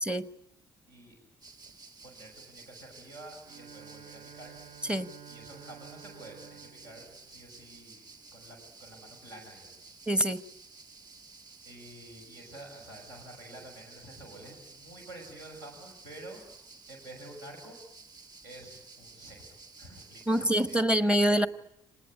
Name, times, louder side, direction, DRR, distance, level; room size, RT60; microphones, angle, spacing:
sound 1, 1.4-20.8, right 4 dB, 35° right, 2.0 m, -53 dB
voice 1, 2.0-4.6 5.3-8.0 8.3-10.0 11.6-16.4 16.9-17.8 18.4-21.1, right 1 dB, 75° right, 0 dB, 6.3 m, -49 dB
Bowed string instrument, 3.4-8.2, right 9 dB, 50° right, 1.1 m, -52 dB
voice 2, 10.1-10.4 20.3-21.5, equal, 10° right, 14 dB, 1.0 m, -25 dB
26.5 x 20.0 x 8.5 m, 0.76 s
figure-of-eight pair, 45°, 12 cm